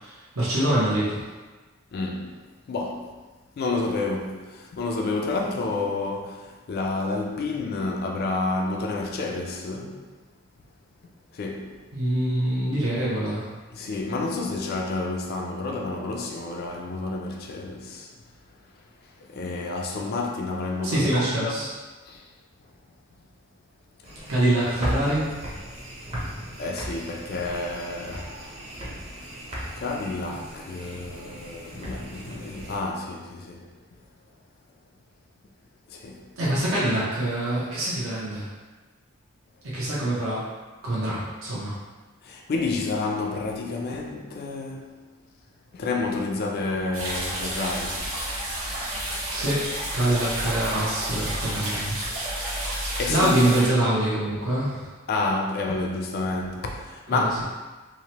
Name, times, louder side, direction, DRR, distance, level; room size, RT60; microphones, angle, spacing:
voice 1, 0.0-1.2 11.9-13.5 20.8-21.7 24.3-25.3 36.4-38.4 39.6-40.4 40.8-41.7 49.3-49.7 49.9-52.0 52.5-54.8 57.1-57.4, right 1 dB, 70° right, 0.7 m, -25 dB
voice 2, 1.9-3.2 3.6-10.1 11.3-11.8 13.7-18.2 19.0-21.5 22.1-22.3 24.2-24.3 26.6-28.4 29.8-33.8 35.9-36.7 42.2-45.0 45.7-48.1 52.4-52.5 53.0-53.4 55.1-57.4, left 3 dB, 45° left, 0.3 m, -30 dB
sound 1, 24.0-32.8, equal, 25° right, 0.6 m, -36 dB
sound 2, 46.9-53.7, right 1 dB, 85° right, 1.0 m, -30 dB
2.9 x 2.1 x 2.8 m
head